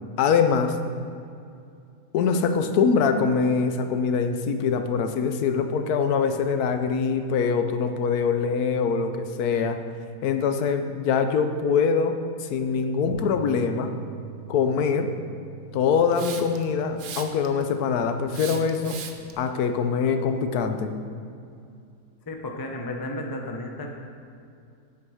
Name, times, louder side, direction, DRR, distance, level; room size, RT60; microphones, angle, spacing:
voice 1, 0.2-0.8 2.1-9.8 10.2-13.9 14.5-15.1 15.7-19.0 19.4-20.9, left 5 dB, 80° left, 7 dB, 1.1 m, -23 dB
sound 1, 13.1-19.3, right 7 dB, 15° right, 1.4 m, -45 dB
Hiss, 16.1-16.6 17.0-17.6 18.3-19.3, right 7 dB, 65° right, 1.0 m, -37 dB
voice 2, 22.3-23.9, left 1 dB, 25° left, 2 dB, 0.4 m, -33 dB
8.5 x 4.6 x 6.3 m, 2.5 s
omnidirectional pair, 1.6 m